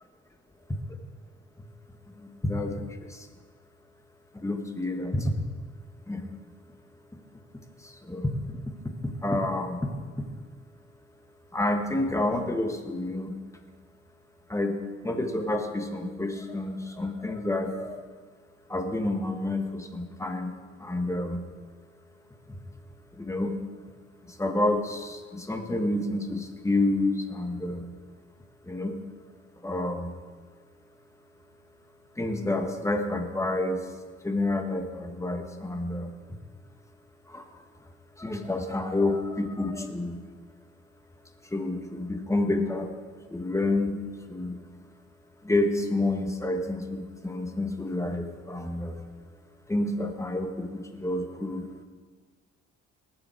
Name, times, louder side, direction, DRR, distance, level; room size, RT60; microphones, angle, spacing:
voice 1, 2.2-3.3 4.3-5.3 6.1-6.3 7.8-8.3 9.2-9.9 11.5-13.3 14.5-18.0 18.7-21.4 23.2-23.6 24.3-27.9 28.7-29.0 29.6-30.1 32.2-33.8 34.2-36.1 37.3-37.4 38.2-40.2 41.5-42.9 43.3-44.0 44.3-44.6 45.4-49.0 49.7-51.6, left 2 dB, 10° left, 5 dB, 1.5 m, -29 dB
19.0 x 7.1 x 4.6 m, 1.6 s
cardioid pair, 90°, 30 cm